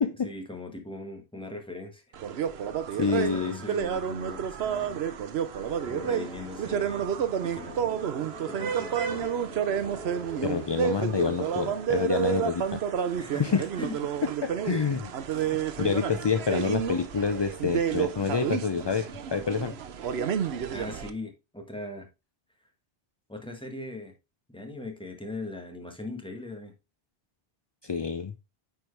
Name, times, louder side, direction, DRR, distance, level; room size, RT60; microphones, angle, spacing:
voice 1, 0.2-2.2 3.0-5.0 5.8-7.1 7.4-8.1 8.5-9.4 13.2-14.0 20.7-22.1 23.3-24.1 24.5-26.7, left 2 dB, 5° left, 1.4 m, -40 dB
sound 1, 2.1-21.1, right 8 dB, 85° right, 1.0 m, -30 dB
voice 2, 2.9-3.6 10.4-12.8 13.4-13.6 14.2-19.7 27.8-28.3, left 5 dB, 40° left, 0.4 m, -28 dB
sound 2, 5.5-12.1, equal, 65° left, 3.1 m, -45 dB
9.1 x 4.6 x 3.2 m
omnidirectional pair, 1.0 m